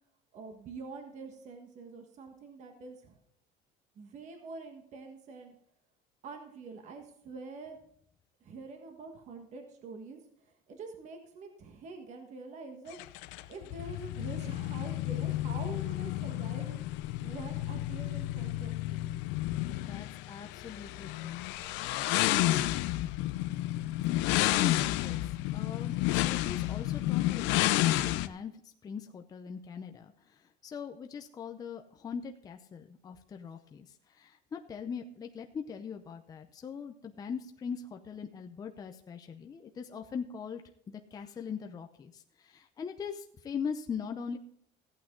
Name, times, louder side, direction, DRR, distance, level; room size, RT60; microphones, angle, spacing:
voice 1, 0.3-3.2 3.9-5.5 6.2-7.8 8.4-13.0 13.5-19.1, right 4 dB, 40° right, 4 dB, 1.5 m, -46 dB
sound 1, 12.9-28.3, left 16 dB, 80° left, 0.6 m, -31 dB
voice 2, 19.9-21.7 22.2-22.8 24.3-40.6 40.9-44.4, left 6 dB, 20° left, 4 dB, 0.6 m, -41 dB
15.0 x 8.6 x 3.8 m, 0.67 s
cardioid pair, 160°, 19 cm